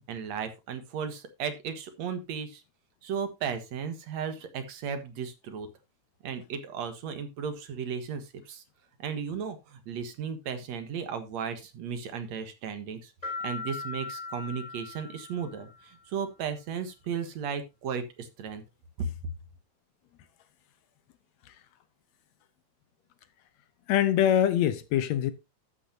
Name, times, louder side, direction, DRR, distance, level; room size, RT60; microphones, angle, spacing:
voice 1, 0.1-2.6 3.0-5.7 6.2-8.6 9.0-13.1 13.4-18.6 19.0-19.1, right 6 dB, 70° right, 2.6 m, -35 dB
sound 1, 13.2-15.9, left 4 dB, 15° left, 3.6 m, -39 dB
voice 2, 23.9-25.3, left 10 dB, 75° left, 2.1 m, -24 dB
12.5 x 8.7 x 2.8 m
omnidirectional pair, 3.3 m